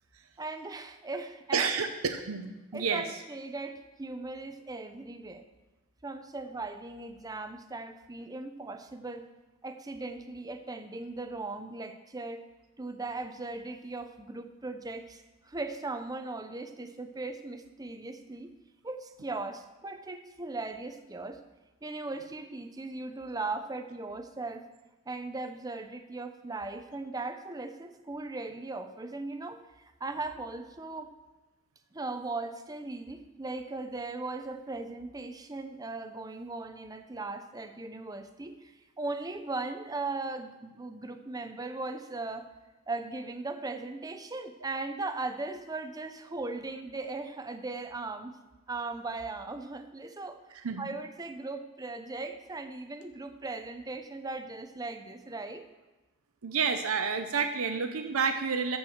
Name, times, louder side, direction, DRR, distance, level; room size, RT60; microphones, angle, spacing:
voice 1, 0.4-1.7 2.7-5.4 6.0-9.2 9.6-12.4 12.8-18.5 18.8-21.4 21.8-24.6 25.1-31.1 31.9-42.5 42.9-48.3 48.7-50.4 50.8-55.6, right 3 dB, 15° right, 8 dB, 0.6 m, -38 dB
voice 2, 1.5-3.1 50.6-50.9 56.4-58.8, right 5 dB, 75° right, 7 dB, 0.7 m, -29 dB
12.5 x 4.7 x 7.1 m, 1.1 s
head